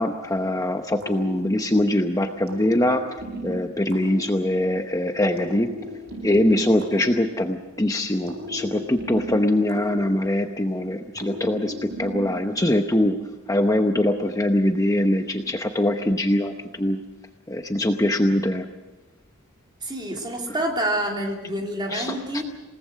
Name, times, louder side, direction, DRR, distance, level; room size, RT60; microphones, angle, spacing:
voice 1, 0.0-3.0 3.4-5.7 6.2-11.7 12.0-13.2 13.5-16.5 16.8-17.0 17.5-18.6 21.9-22.4, left 1 dB, 15° left, 5 dB, 0.8 m, -22 dB
sound 1, 1.0-2.0 2.5-4.9 5.4-7.8 8.3-10.7 11.2-12.6, equal, 90° right, 6.5 m, -36 dB
voice 2, 19.8-22.4, right 1 dB, 20° right, 0 dB, 3.4 m, -27 dB
28.0 x 18.5 x 6.3 m, 1.2 s
head